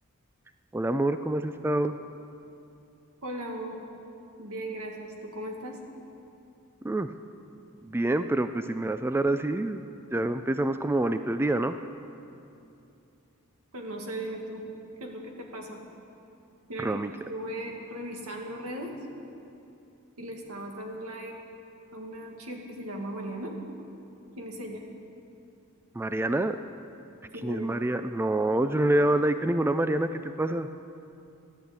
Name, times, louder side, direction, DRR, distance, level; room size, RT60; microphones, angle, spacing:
voice 1, 0.7-1.9 6.8-7.1 7.8-11.8 16.8-17.1 26.0-26.6 27.4-30.7, right 1 dB, 10° right, 10 dB, 0.3 m, -27 dB
voice 2, 3.2-3.8 4.4-5.8 13.7-14.6 15.0-15.8 16.7-16.9 17.3-18.9 20.2-21.4 21.9-23.5 24.4-24.8 27.3-27.8, right 1 dB, 85° right, 1 dB, 2.0 m, -37 dB
14.0 x 10.5 x 8.2 m, 2.7 s
head